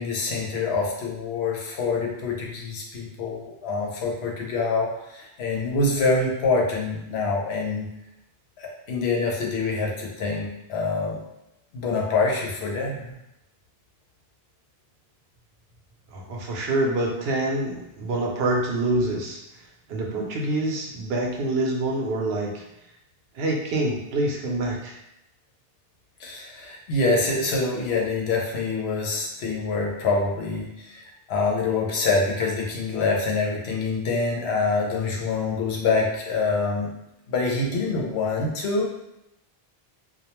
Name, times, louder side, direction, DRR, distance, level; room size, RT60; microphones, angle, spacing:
voice 1, 0.0-7.9 8.6-11.2 11.7-13.2 26.2-36.9 37.3-38.9, left 3 dB, 85° left, -2 dB, 0.9 m, -25 dB
voice 2, 16.1-19.4 19.9-22.6 23.3-25.0, right 2 dB, 75° right, 0 dB, 0.8 m, -26 dB
2.2 x 2.1 x 2.9 m, 0.88 s
omnidirectional pair, 1.0 m